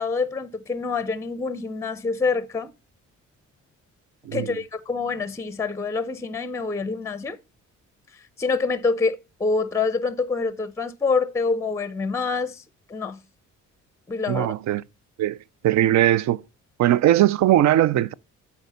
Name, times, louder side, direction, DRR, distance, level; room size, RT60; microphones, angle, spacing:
voice 1, 0.0-2.7 4.3-7.4 8.4-12.6 12.9-13.2 14.1-14.5, left 4 dB, 10° left, 0.6 m, -26 dB
voice 2, 14.3-14.8 15.2-15.4 15.6-16.4 16.8-18.1, right 13 dB, 65° right, 0.4 m, -19 dB
8.1 x 4.3 x 5.5 m
cardioid pair, 90°, 30 cm